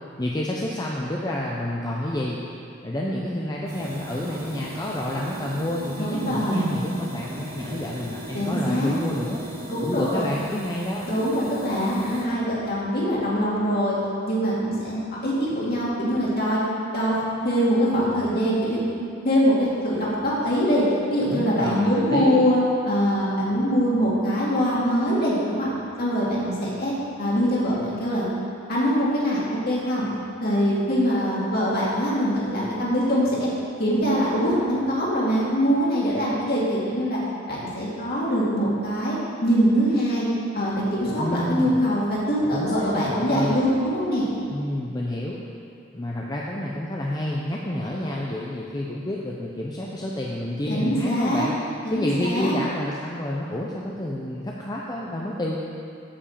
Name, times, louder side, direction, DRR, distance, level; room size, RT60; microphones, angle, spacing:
voice 1, 0.2-2.4 2.8-9.4 9.8-11.1 21.3-22.4 41.2-41.8 42.5-43.6 44.5-45.4 45.9-51.5 51.9-55.6, left 1 dB, 20° left, -3 dB, 0.6 m, -29 dB
sound 1, 3.7-12.2, equal, 65° right, 2.4 m, -38 dB
voice 2, 6.0-6.7 8.3-8.9 9.7-10.3 11.1-14.0 14.3-16.6 16.9-18.8 19.2-20.8 21.1-22.6 22.9-25.7 26.0-26.9 27.2-28.3 28.7-30.1 30.4-33.5 33.8-37.2 37.5-40.3 40.5-44.3 50.7-51.4 51.9-52.5, equal, 50° left, -7 dB, 2.5 m, -23 dB
8.6 x 5.3 x 7.2 m, 2.5 s
head